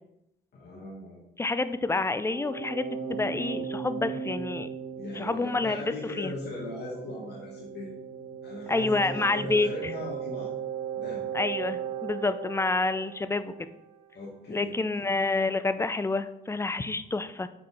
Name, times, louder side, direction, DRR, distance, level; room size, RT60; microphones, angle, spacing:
voice 1, 0.5-1.2 5.0-7.9 8.4-10.5 11.0-11.2 14.1-14.8, left 2 dB, 55° left, -4 dB, 1.9 m, -38 dB
voice 2, 1.4-4.7 5.1-6.3 8.7-9.9 11.3-13.5 14.5-17.5, left 3 dB, 15° left, 12 dB, 0.5 m, -28 dB
sound 1, 2.3-13.9, right 7 dB, 80° right, 1.5 m, -37 dB
7.4 x 4.4 x 4.4 m, 0.85 s
cardioid pair, 90°, 20 cm